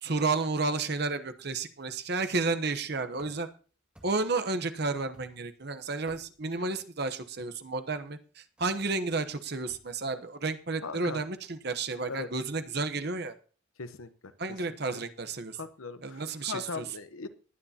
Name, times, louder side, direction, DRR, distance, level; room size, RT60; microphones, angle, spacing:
voice 1, 0.0-3.5 4.0-13.3 14.4-15.6 16.0-16.8, right 3 dB, 50° right, 9 dB, 1.0 m, -32 dB
sound 1, 3.2-3.6 3.9-4.4 5.1-5.6 5.9-6.6 7.4-7.7 8.6-8.9 9.7-10.0, equal, 5° right, 2.3 m, -56 dB
voice 2, 10.8-11.2 12.0-12.3 13.8-14.1 14.9-15.0 15.6-17.3, left 4 dB, 90° left, 11 dB, 1.0 m, -39 dB
19.5 x 9.6 x 2.9 m, 0.38 s
head